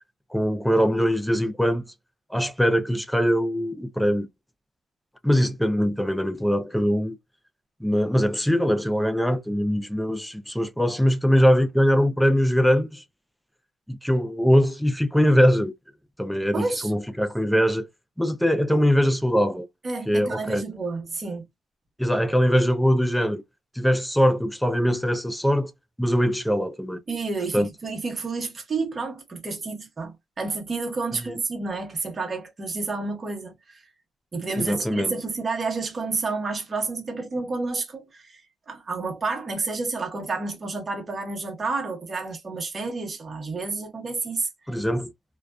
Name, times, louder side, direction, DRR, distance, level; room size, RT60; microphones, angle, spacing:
voice 1, 0.3-1.8 2.3-4.3 5.2-7.2 7.8-13.0 13.9-15.7 16.2-17.9 18.2-19.7 20.1-20.6 22.0-23.4 23.8-25.7 26.0-27.0 27.5-27.7 31.1-31.4 34.6-35.1 44.7-45.1, equal, ahead, 0.4 m, -22 dB
voice 2, 16.5-16.9 19.8-21.5 27.1-33.8 34.3-38.4 38.7-44.5, right 3 dB, 30° right, 1.0 m, -30 dB
2.4 x 2.3 x 2.2 m
cardioid pair, 90°, 0 cm